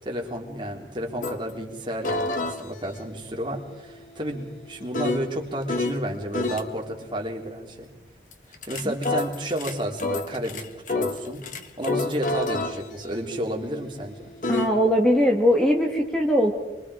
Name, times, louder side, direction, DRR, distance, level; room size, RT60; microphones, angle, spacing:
voice 1, 0.0-7.9 8.7-11.4 11.8-14.3, right 1 dB, 25° right, 0 dB, 3.4 m, -31 dB
sound 1, 1.2-1.4 2.0-6.0 6.3-6.6 8.3-14.7, left 2 dB, 45° left, 1.5 m, -30 dB
voice 2, 14.5-16.5, equal, 5° left, 0 dB, 1.8 m, -20 dB
26.5 x 23.5 x 4.9 m, 1.1 s
head